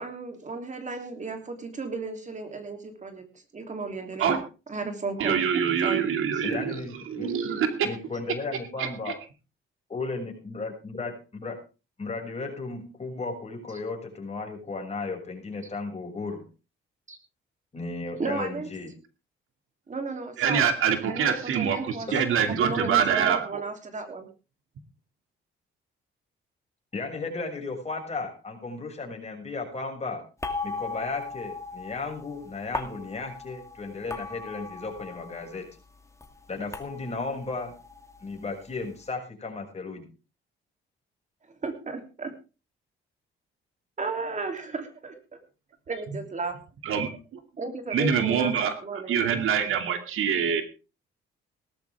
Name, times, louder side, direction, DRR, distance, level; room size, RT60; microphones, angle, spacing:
voice 1, 0.0-4.3 4.7-5.4 5.8-6.0 6.3-6.4 17.1-17.2 18.2-18.7 19.9-20.7 21.0-22.1 22.5-24.3 41.6-42.3 44.0-45.4 45.9-46.6 47.6-49.2, right 3 dB, 35° right, 6 dB, 3.1 m, -34 dB
voice 2, 5.2-7.9 8.8-9.1 20.4-23.6 46.8-47.4 47.9-48.7 49.1-50.6, right 7 dB, 75° right, 7 dB, 2.6 m, -25 dB
voice 3, 6.4-7.3 7.8-9.1 9.9-11.6 12.0-16.4 17.7-18.9 22.1-22.2 26.9-30.2 30.6-35.7 36.5-37.7 38.2-40.1, left 3 dB, 30° left, 2 dB, 6.5 m, -35 dB
sound 1, 30.4-35.7 35.9-38.8, left 3 dB, 15° left, 2.4 m, -38 dB
18.0 x 13.5 x 3.6 m, 0.32 s
cardioid pair, 95°, 21 cm